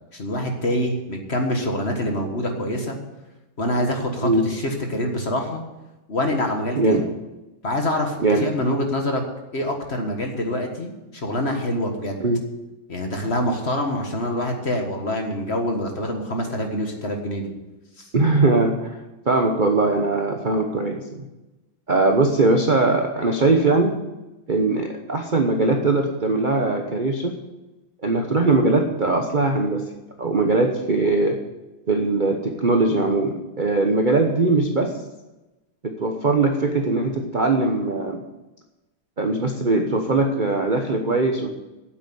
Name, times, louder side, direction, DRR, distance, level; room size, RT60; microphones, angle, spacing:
voice 1, 0.1-3.0 3.6-5.6 6.1-7.1 7.6-9.2 9.5-12.2 12.9-17.5 18.0-18.1, left 1 dB, 35° left, 3 dB, 1.6 m, -25 dB
voice 2, 18.1-19.0 19.3-21.2 21.9-23.9 24.5-27.3 28.0-29.8 30.2-31.4 31.9-35.0 35.8-38.2 39.2-41.5, right 3 dB, 35° right, 3 dB, 0.8 m, -20 dB
9.3 x 8.2 x 8.5 m, 1.0 s
omnidirectional pair, 2.2 m